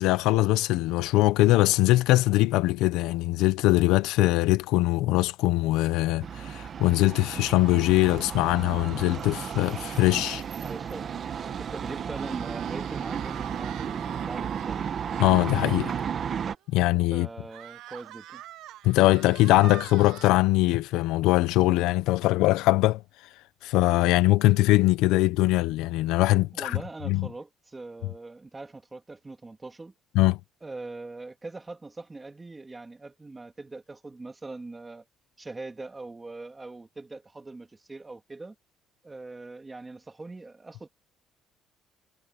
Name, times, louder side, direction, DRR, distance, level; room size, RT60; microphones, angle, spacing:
voice 1, 0.0-10.4 15.2-16.0 16.7-17.3 18.8-23.0 23.6-26.8 27.1-27.3 30.1-30.4, left 18 dB, 85° left, 0.7 m, -22 dB
sound 1, 6.2-16.6, right 7 dB, 35° right, 1.2 m, -33 dB
voice 2, 10.6-11.1 11.6-14.9 17.1-18.4 26.5-29.9 30.6-35.0 35.4-38.6 39.0-40.9, right 3 dB, 15° right, 2.7 m, -41 dB
sound 2, 12.2-15.6 16.0-16.1 16.5-16.6 17.5-20.3, right 14 dB, 70° right, 1.1 m, -44 dB
cardioid pair, 160°, 0 cm